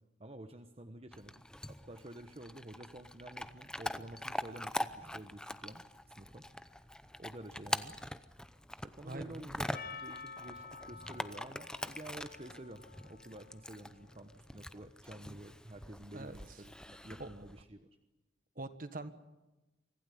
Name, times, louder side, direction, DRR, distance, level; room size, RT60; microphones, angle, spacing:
voice 1, 0.2-1.4 1.7-6.8 7.2-8.0 8.8-17.9, right 1 dB, 35° right, 8 dB, 1.1 m, -50 dB
Chewing mastication / Dog, 1.1-17.6, left 1 dB, 5° left, 0.7 m, -44 dB
voice 2, 9.0-9.5 16.1-16.6 17.2-17.3 18.5-19.1, right 2 dB, 50° right, 11 dB, 1.6 m, -44 dB
Percussion, 9.7-14.3, left 5 dB, 50° left, 1.3 m, -50 dB
25.0 x 16.0 x 10.0 m, 1.1 s
head